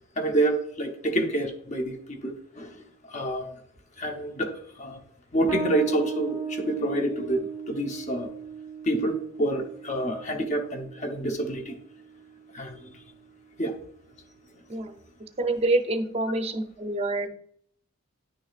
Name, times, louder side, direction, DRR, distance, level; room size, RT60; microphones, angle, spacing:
voice 1, 0.2-3.5 4.0-5.0 5.3-8.3 8.8-11.8 12.5-12.9 13.6-13.7, right 1 dB, 30° left, 4 dB, 0.8 m, -28 dB
Bass guitar, 5.5-12.6, right 6 dB, 10° right, 1.0 m, -37 dB
voice 2, 15.4-17.3, right 2 dB, 25° right, 6 dB, 0.6 m, -26 dB
10.0 x 6.2 x 2.4 m, 0.66 s
head